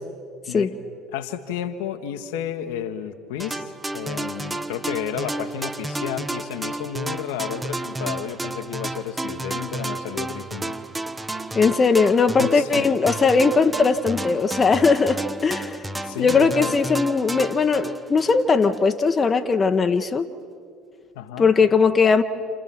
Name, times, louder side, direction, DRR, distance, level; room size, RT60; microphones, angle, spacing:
voice 1, 1.1-10.8 12.4-12.8 16.0-16.8 21.1-21.5, left 9 dB, 70° left, 1.3 m, -32 dB
sound 1, 3.4-18.8, right 2 dB, 15° right, 1.1 m, -32 dB
voice 2, 11.5-15.8 16.2-20.2 21.4-22.2, left 4 dB, 30° left, 1.1 m, -19 dB
29.5 x 29.0 x 6.0 m
figure-of-eight pair, 60°, 0 cm